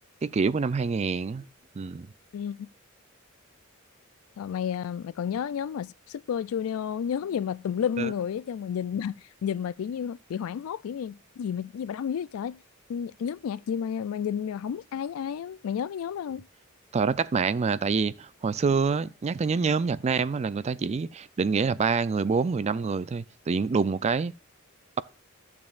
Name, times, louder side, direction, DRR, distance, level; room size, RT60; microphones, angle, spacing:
voice 1, 0.2-1.5 1.8-2.1 8.0-8.1 16.9-24.3, right 5 dB, 30° right, 0.3 m, -26 dB
voice 2, 2.3-2.7 4.4-9.2 9.4-12.6 12.9-16.4, left 8 dB, 90° left, 0.3 m, -31 dB
13.5 x 7.3 x 2.5 m
head